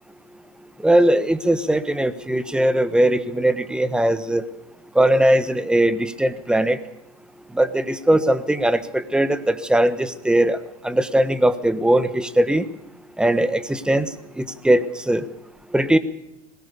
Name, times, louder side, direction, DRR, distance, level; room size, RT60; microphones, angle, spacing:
voice 1, 0.8-4.4 4.9-6.8 7.5-10.6 10.8-12.7 13.2-14.1 14.4-15.2 15.7-16.0, right 1 dB, 5° right, 12 dB, 1.2 m, -19 dB
21.5 x 18.5 x 6.9 m, 0.86 s
supercardioid pair, 135°, 19 cm